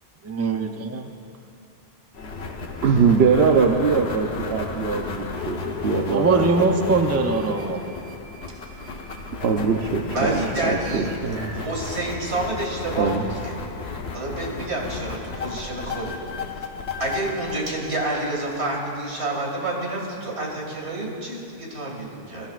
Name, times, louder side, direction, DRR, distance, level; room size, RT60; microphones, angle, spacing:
voice 1, 0.2-1.1 6.1-7.8, right 3 dB, 20° right, 5 dB, 0.5 m, -22 dB
sound 1, 2.1-18.6, left 4 dB, 80° left, 1.3 m, -33 dB
voice 2, 2.8-6.7 9.4-11.6 13.0-13.2, right 5 dB, 70° right, 1 dB, 1.0 m, -22 dB
voice 3, 10.1-11.1 11.6-13.6 14.1-16.2 17.0-22.5, right 2 dB, 90° right, -2 dB, 2.5 m, -28 dB
22.0 x 13.5 x 2.4 m, 2.6 s
omnidirectional pair, 1.1 m